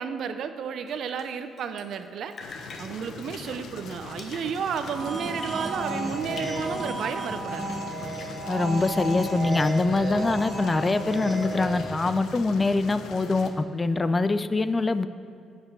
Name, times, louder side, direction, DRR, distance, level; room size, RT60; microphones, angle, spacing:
voice 1, 0.0-2.3 2.8-7.7, right 7 dB, 70° right, 10 dB, 0.6 m, -32 dB
Drip, 0.9-2.0 2.3-6.0 6.3-7.3, left 3 dB, 45° left, 1.1 m, -46 dB
sound 1, 2.4-13.5, left 4 dB, 75° left, 0.9 m, -41 dB
sound 2, 4.7-12.1, right 2 dB, 30° right, 2.4 m, -33 dB
voice 2, 8.5-15.1, left 3 dB, 25° left, 12 dB, 0.4 m, -24 dB
10.0 x 6.0 x 6.8 m, 2.5 s
cardioid pair, 90°, 0 cm